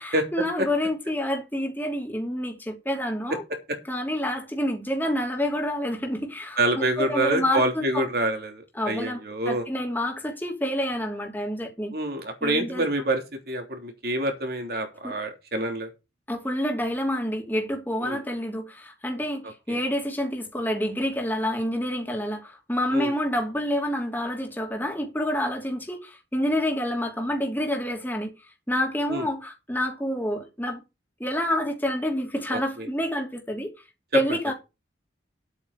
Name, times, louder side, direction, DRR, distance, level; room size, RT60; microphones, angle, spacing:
voice 1, 0.0-3.4 3.9-8.0 8.7-9.2 9.5-11.9 12.4-12.8 15.0-15.2 16.3-28.3 28.7-30.8 31.2-33.7 34.1-34.5, equal, 10° left, 2.9 m, -28 dB
voice 2, 6.6-9.6 11.9-15.9 18.0-18.2 19.4-19.8 22.9-23.1 29.1-29.3 32.5-32.9 34.3-34.4, right 1 dB, 55° right, 3.3 m, -27 dB
10.5 x 8.4 x 5.0 m
head